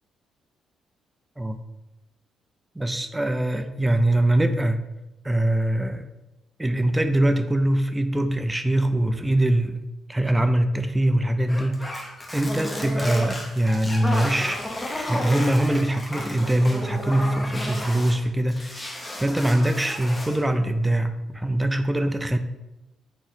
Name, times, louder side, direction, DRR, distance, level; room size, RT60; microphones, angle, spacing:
voice 1, 2.8-4.8 5.2-6.0 6.6-9.8 10.1-11.9 12.3-14.6 15.1-22.4, right 1 dB, 10° right, 9 dB, 0.3 m, -23 dB
sound 1, 11.5-18.2 18.5-20.4, left 1 dB, 15° left, 0.7 m, -33 dB
4.0 x 3.2 x 4.0 m, 1.0 s
cardioid pair, 90°, 0 cm